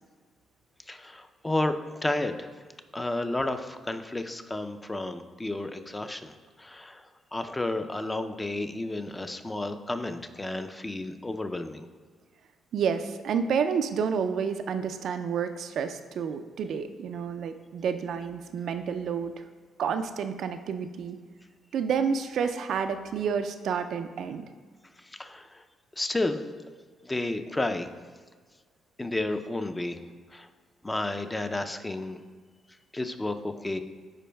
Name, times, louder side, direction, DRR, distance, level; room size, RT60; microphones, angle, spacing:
voice 1, 0.9-2.5 2.9-7.0 7.3-11.9 25.1-25.6 26.0-26.4 27.0-27.9 29.0-30.0 30.3-30.5 30.8-32.2 32.9-33.8, left 2 dB, 15° left, 8 dB, 0.4 m, -31 dB
voice 2, 12.7-19.4 19.8-21.2 21.7-24.5, right 6 dB, 70° right, 8 dB, 0.3 m, -29 dB
10.0 x 4.5 x 2.2 m, 1.5 s
cardioid pair, 90°, 0 cm